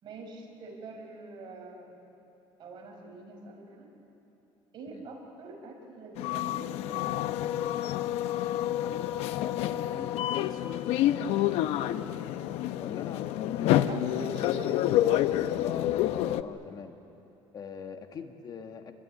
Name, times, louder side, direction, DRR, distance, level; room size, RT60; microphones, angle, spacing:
voice 1, 0.0-1.9 2.6-3.9 4.7-7.5 13.9-14.7 15.1-15.2, right 3 dB, 45° right, 1 dB, 5.7 m, -44 dB
sound 1, 6.2-16.4, left 13 dB, 80° left, 0.8 m, -28 dB
voice 2, 8.8-11.7 12.8-13.9 14.2-14.8 15.6-17.0 17.5-18.9, left 6 dB, 40° left, 6 dB, 1.5 m, -42 dB
27.5 x 22.0 x 9.7 m, 2.9 s
cardioid pair, 140°, 10 cm